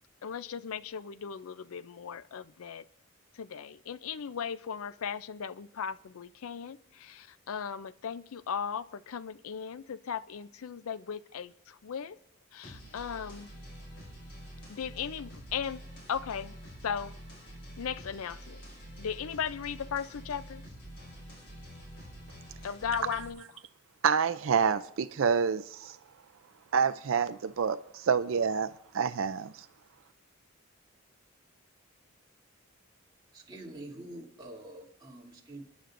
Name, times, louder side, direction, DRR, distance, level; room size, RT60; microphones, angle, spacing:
voice 1, 0.2-2.8 3.3-12.2 12.5-13.5 14.7-15.8 16.1-16.5 16.8-17.2 17.8-18.6 19.0-20.6 22.6-23.4, left 7 dB, 80° left, 0.5 m, -37 dB
sound 1, 12.6-23.3, equal, 50° left, 5.2 m, -47 dB
voice 2, 24.0-26.0 26.7-28.7 28.9-29.6, right 6 dB, 65° right, 0.4 m, -27 dB
voice 3, 33.3-35.6, right 1 dB, 20° right, 2.7 m, -46 dB
29.5 x 10.5 x 2.6 m
head